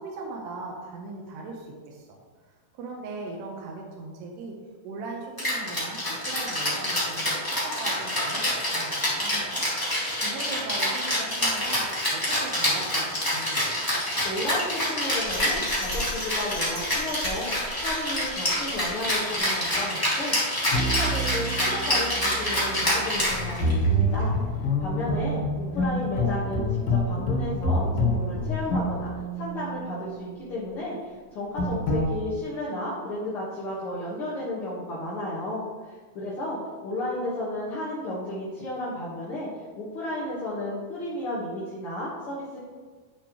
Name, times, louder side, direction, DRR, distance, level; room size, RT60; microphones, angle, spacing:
voice 1, 0.0-2.2 2.7-4.6 4.8-9.7 10.2-11.8 12.1-13.8 25.5-26.3, right 3 dB, 85° right, -1 dB, 3.1 m, -39 dB
Rattle (instrument), 5.4-23.8, left 1 dB, 5° left, 1.8 m, -27 dB
voice 2, 14.2-17.5 17.8-20.3 20.7-27.8 28.1-29.1 29.4-39.5 39.8-42.6, left 1 dB, 55° left, -7 dB, 1.6 m, -33 dB
Bell, 15.0-19.4 19.8-19.9, left 1 dB, 30° right, 0.9 m, -39 dB
sound 1, 20.7-30.1 31.6-32.0, equal, 90° left, 1.3 m, -27 dB
10.5 x 8.1 x 3.1 m, 1.5 s
omnidirectional pair, 4.6 m